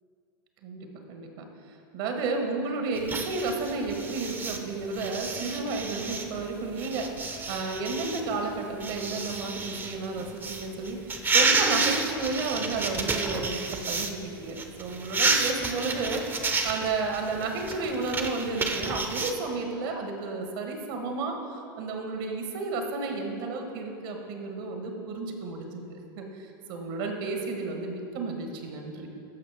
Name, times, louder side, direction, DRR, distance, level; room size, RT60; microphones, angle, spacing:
voice 1, 0.6-1.5 1.9-29.1, right 3 dB, 65° right, 3 dB, 1.4 m, -32 dB
sound 1, 3.0-14.1 14.4-19.3, right 3 dB, 15° right, 0.7 m, -30 dB
14.0 x 5.3 x 3.5 m, 2.5 s
hypercardioid pair, 95°, 12 cm